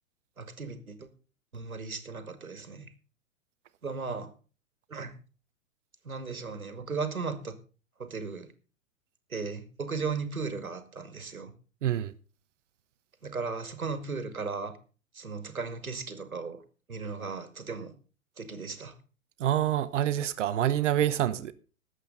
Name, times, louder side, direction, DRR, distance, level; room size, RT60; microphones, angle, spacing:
voice 1, 0.4-1.1 1.5-2.9 3.8-4.3 4.9-5.1 6.0-7.6 8.0-8.5 9.3-11.5 13.2-14.7 15.1-16.6 16.9-17.9 18.4-19.0, right 4 dB, 90° right, 2.1 m, -36 dB
voice 2, 11.8-12.1 19.4-21.5, right 11 dB, 60° right, 1.0 m, -26 dB
20.0 x 8.1 x 3.9 m
figure-of-eight pair, 110°, 41 cm